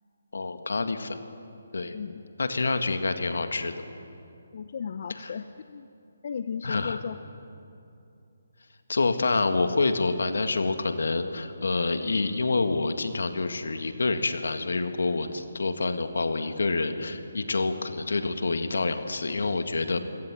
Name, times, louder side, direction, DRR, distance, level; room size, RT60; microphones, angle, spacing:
voice 1, 0.3-1.2 1.7-2.0 2.4-3.7 6.6-7.0 8.9-20.0, left 3 dB, 75° left, 8 dB, 1.9 m, -27 dB
voice 2, 4.5-5.9 6.2-7.2, left 6 dB, 50° left, 10 dB, 0.7 m, -35 dB
27.5 x 17.5 x 7.6 m, 2.7 s
figure-of-eight pair, 150°, 0 cm